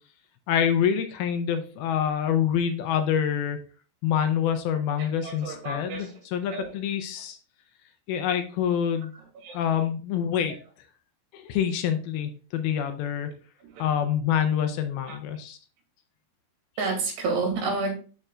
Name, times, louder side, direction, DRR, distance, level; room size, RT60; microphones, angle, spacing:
voice 1, 0.5-3.6 4.0-7.4 8.1-9.1 9.5-10.6 11.3-13.3 13.8-15.6, left 8 dB, 80° left, 8 dB, 2.3 m, -26 dB
voice 2, 5.0-6.1 6.5-6.7 9.4-9.6 13.8-13.9 15.1-15.2 16.8-17.9, right 3 dB, 80° right, 1 dB, 4.2 m, -30 dB
11.0 x 4.4 x 2.4 m, 0.37 s
omnidirectional pair, 4.7 m